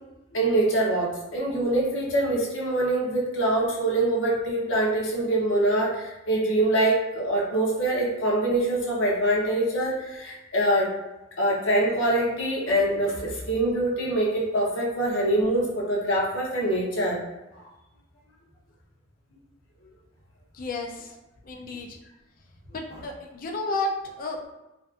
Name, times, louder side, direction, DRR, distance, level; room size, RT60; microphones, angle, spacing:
voice 1, 0.3-10.9 11.4-17.2, right 1 dB, 85° left, -4 dB, 0.7 m, -24 dB
voice 2, 20.5-21.2 21.4-22.0 22.7-24.4, left 2 dB, 45° left, 1 dB, 0.4 m, -32 dB
2.6 x 2.4 x 2.4 m, 0.99 s
head